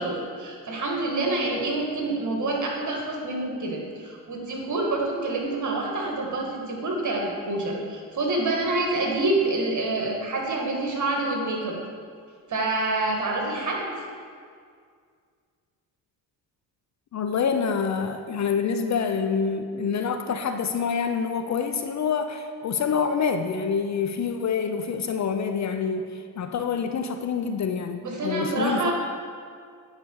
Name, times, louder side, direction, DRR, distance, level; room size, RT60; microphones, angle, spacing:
voice 1, 0.0-11.8 12.5-13.9 28.0-28.9, right 2 dB, 45° right, -1 dB, 2.1 m, -27 dB
voice 2, 17.1-28.9, left 6 dB, 45° left, 7 dB, 0.6 m, -26 dB
9.8 x 4.9 x 4.7 m, 2.1 s
supercardioid pair, 70°, 41 cm